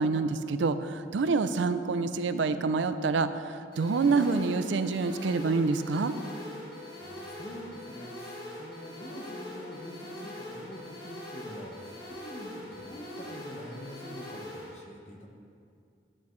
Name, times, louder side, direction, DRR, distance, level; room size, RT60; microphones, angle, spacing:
voice 1, 0.0-6.1, right 4 dB, 85° right, 11 dB, 0.4 m, -27 dB
sound 1, 3.7-14.7, left 1 dB, 55° left, 1.9 m, -43 dB
voice 2, 7.0-15.3, equal, 35° left, 1 dB, 1.0 m, -45 dB
11.5 x 8.9 x 3.2 m, 2.3 s
head